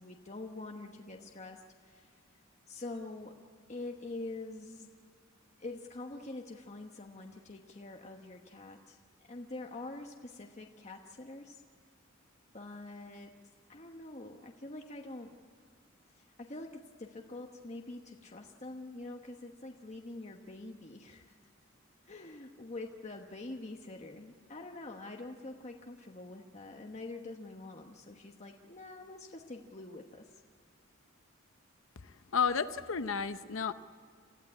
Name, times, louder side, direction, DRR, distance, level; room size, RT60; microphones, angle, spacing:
voice 1, 0.0-2.2 2.7-3.3 3.7-4.9 5.6-9.0 9.3-11.6 12.5-13.3 13.7-15.3 16.1-21.3 22.1-30.4, left 2 dB, 35° left, 2 dB, 1.2 m, -45 dB
voice 2, 32.0-33.7, left 6 dB, 75° left, 11 dB, 0.8 m, -32 dB
28.0 x 15.0 x 9.7 m, 2.1 s
head